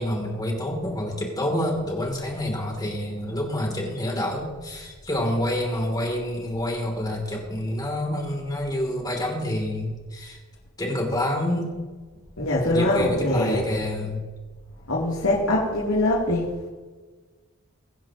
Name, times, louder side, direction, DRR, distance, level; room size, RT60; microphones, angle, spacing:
voice 1, 0.0-10.4 10.8-11.8 12.6-14.3, left 1 dB, 20° left, 1 dB, 3.0 m, -28 dB
voice 2, 12.4-13.6 14.9-16.7, left 1 dB, 80° left, -7 dB, 3.1 m, -23 dB
22.5 x 10.5 x 3.0 m, 1.4 s
head